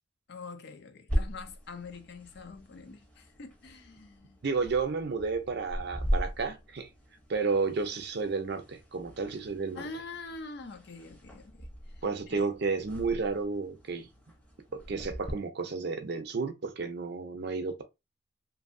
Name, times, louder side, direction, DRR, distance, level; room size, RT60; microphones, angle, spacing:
voice 1, 0.3-4.4 9.7-11.7 12.0-12.5, left 3 dB, 55° left, 0.5 m, -45 dB
sound 1, 1.1-15.3, equal, 5° left, 0.7 m, -39 dB
voice 2, 4.4-6.9 7.3-9.8 12.0-14.1 14.7-17.8, right 4 dB, 55° right, 0.5 m, -32 dB
2.7 x 2.6 x 2.5 m
head